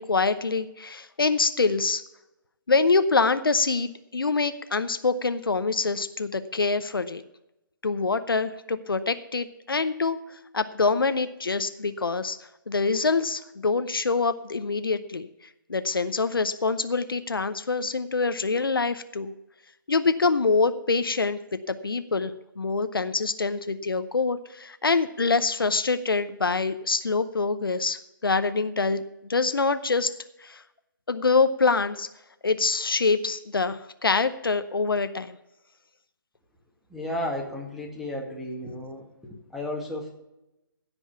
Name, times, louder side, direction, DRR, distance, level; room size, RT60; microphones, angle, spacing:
voice 1, 0.0-2.0 2.7-7.2 7.8-10.2 10.5-12.4 12.7-15.3 15.7-19.3 19.9-21.4 21.7-29.0 29.3-30.1 30.4-30.6 31.1-32.1 32.4-35.4, left 4 dB, 80° left, 11 dB, 0.7 m, -25 dB
voice 2, 36.9-40.1, left 1 dB, ahead, -1 dB, 1.9 m, -33 dB
16.0 x 5.4 x 6.9 m, 0.91 s
figure-of-eight pair, 135°, 12 cm